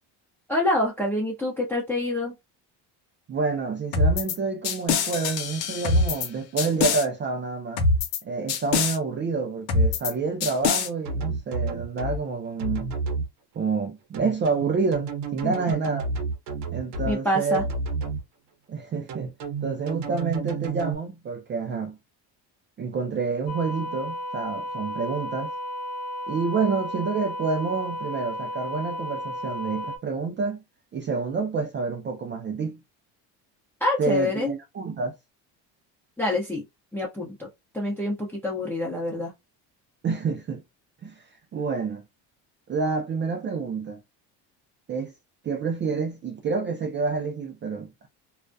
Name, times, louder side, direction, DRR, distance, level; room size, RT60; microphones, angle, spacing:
voice 1, 0.5-2.3 15.4-15.5 17.0-17.6 33.8-34.5 36.2-36.6 36.9-37.5 37.7-39.3, left 1 dB, 5° left, 0.7 m, -26 dB
voice 2, 3.3-7.8 8.2-12.9 13.6-16.1 16.7-17.7 18.7-19.3 19.6-22.0 22.8-25.5 26.3-30.6 30.9-32.8 34.0-35.2 40.0-40.6 41.0-41.2 41.5-42.0 42.7-44.0 44.9-45.1 45.4-48.1, right 4 dB, 30° right, 0.4 m, -28 dB
sound 1, 3.9-4.4 4.6-6.3 6.6-7.0 7.8-8.2 8.5-9.0 9.7-10.1 10.4-10.9, left 3 dB, 85° left, 0.7 m, -23 dB
sound 2, 11.0-12.2 12.6-13.2 14.1-17.1 17.5-18.2 19.1-20.9, right 3 dB, 70° right, 0.9 m, -30 dB
sound 3, 23.5-30.0, equal, 40° left, 0.7 m, -33 dB
2.3 x 2.1 x 2.5 m
cardioid pair, 100°, 42 cm